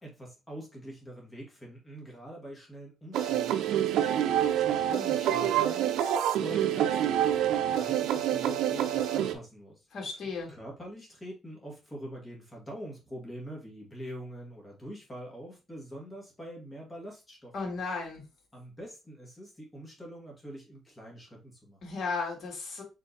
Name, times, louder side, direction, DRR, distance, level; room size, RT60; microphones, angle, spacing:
voice 1, 0.0-9.8 10.1-10.2 10.5-17.8 18.5-21.8, right 1 dB, 15° left, -2 dB, 2.0 m, -44 dB
sound 1, 3.1-9.3, right 11 dB, 85° right, 0.4 m, -27 dB
voice 2, 9.9-10.5 17.5-18.2 21.8-22.8, left 4 dB, 55° left, 0 dB, 2.3 m, -34 dB
4.4 x 3.8 x 2.8 m, 0.28 s
cardioid pair, 90°, 0 cm